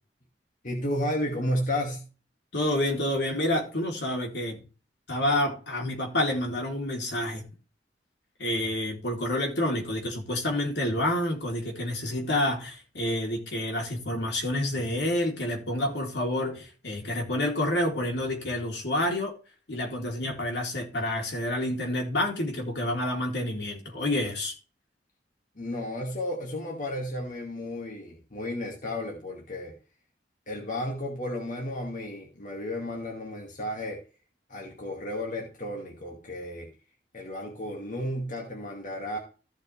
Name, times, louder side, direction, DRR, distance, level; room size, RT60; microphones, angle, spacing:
voice 1, 0.6-2.1 25.6-29.7 30.5-34.0 34.5-36.7 37.1-39.2, left 1 dB, 45° left, 2.4 m, -33 dB
voice 2, 2.5-4.6 5.1-7.4 8.4-19.4 19.7-24.5, left 1 dB, 70° left, 3.7 m, -28 dB
15.0 x 6.3 x 3.5 m
head